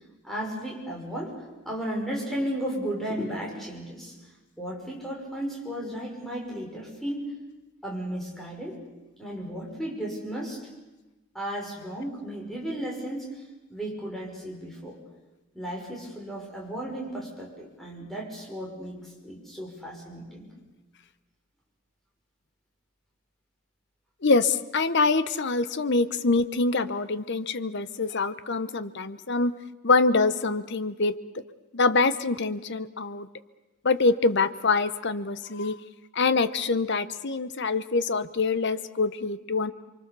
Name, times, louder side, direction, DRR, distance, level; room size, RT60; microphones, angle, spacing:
voice 1, 0.2-1.3 1.6-4.1 4.6-7.3 7.8-8.8 9.2-10.6 11.3-13.4 13.7-15.0 15.5-20.5, right 1 dB, ahead, -3 dB, 5.9 m, -34 dB
voice 2, 24.2-29.5 29.8-31.1 31.7-33.3 33.8-35.8 36.1-39.7, left 3 dB, 55° left, 13 dB, 0.9 m, -25 dB
28.5 x 24.0 x 6.9 m, 1.1 s
head